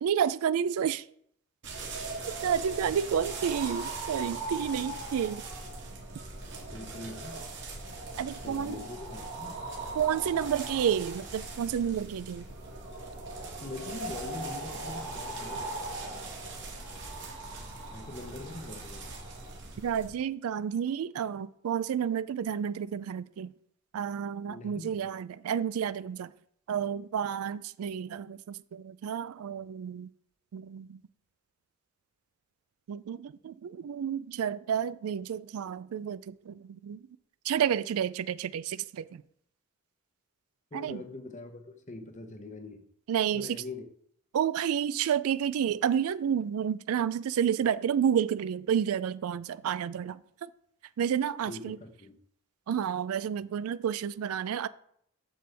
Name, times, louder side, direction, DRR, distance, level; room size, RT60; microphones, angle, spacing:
voice 1, 0.0-1.1 2.4-5.4 8.2-8.8 9.9-12.4 19.8-23.5 23.9-26.3 26.7-30.1 30.5-31.0 32.9-37.1 37.4-39.2 40.7-41.0 43.1-43.6 44.3-50.2 51.0-51.8 52.7-54.7, right 8 dB, 85° right, 0.3 m, -30 dB
sound 1, 1.6-20.1, right 2 dB, 55° right, 1.8 m, -39 dB
voice 2, 6.7-7.4 8.4-9.5 13.6-15.8 17.9-19.1 24.5-25.0 40.7-42.8 43.3-43.9 51.5-52.2, left 2 dB, 35° left, 0.8 m, -42 dB
7.7 x 6.8 x 3.4 m
head